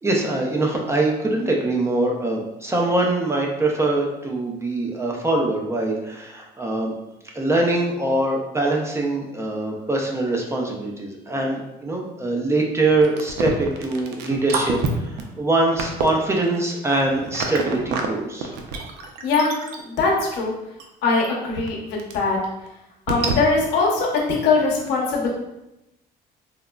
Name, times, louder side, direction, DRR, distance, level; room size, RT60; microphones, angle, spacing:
voice 1, 0.0-6.9 7.3-18.5, right 2 dB, 15° right, -1 dB, 0.4 m, -23 dB
sound 1, 13.0-18.1 18.4-20.2 20.8-20.9 21.2-21.3 21.7-21.8 22.0-22.1 22.7-22.8 23.1-23.4, right 5 dB, 90° right, 0.4 m, -28 dB
voice 2, 19.8-20.5 21.0-22.4 23.1-25.3, left 4 dB, 85° left, -2 dB, 0.8 m, -21 dB
3.6 x 2.0 x 2.2 m, 0.92 s
cardioid pair, 110°, 17 cm